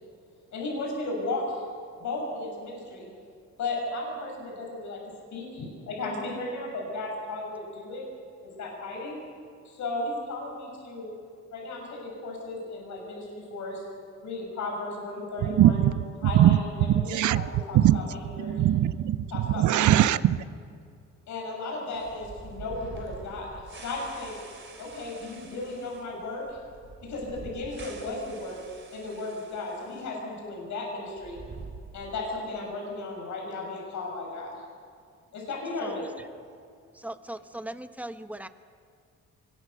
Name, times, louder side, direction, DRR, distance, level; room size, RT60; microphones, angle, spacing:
voice 1, 0.5-1.6 2.0-3.1 3.6-5.0 5.3-8.1 8.4-9.2 9.6-11.2 11.5-13.8 14.2-15.8 16.2-18.6 19.3-19.9 21.3-24.4 24.8-26.6 27.0-28.6 28.9-31.4 31.9-34.6 35.3-36.1, left 2 dB, 70° left, 7.1 m, -35 dB
voice 2, 15.4-15.9 16.2-18.0 18.4-20.4, right 12 dB, 75° right, 0.8 m, -21 dB
sound 1, 21.9-30.1 30.4-30.5 31.1-32.5, right 4 dB, 40° right, 3.3 m, -46 dB
voice 3, 35.8-36.3 36.9-38.5, right 1 dB, 5° right, 1.2 m, -39 dB
24.0 x 22.0 x 6.7 m
cardioid pair, 90°, 30 cm